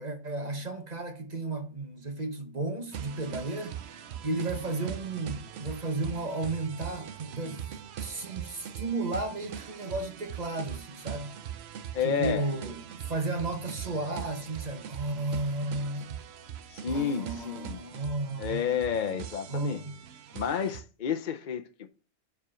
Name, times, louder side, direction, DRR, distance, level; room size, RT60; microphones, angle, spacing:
voice 1, 0.0-3.8 4.2-7.6 8.0-11.3 12.0-12.8 13.1-16.2 16.9-18.7 19.5-19.9, right 2 dB, 35° right, 1.4 m, -33 dB
sound 1, 2.9-20.8, right 9 dB, 70° right, 0.9 m, -41 dB
voice 2, 11.9-12.5 16.7-17.8 18.4-19.8 20.3-21.9, left 7 dB, 50° left, 0.7 m, -30 dB
7.2 x 4.9 x 6.1 m
omnidirectional pair, 1.2 m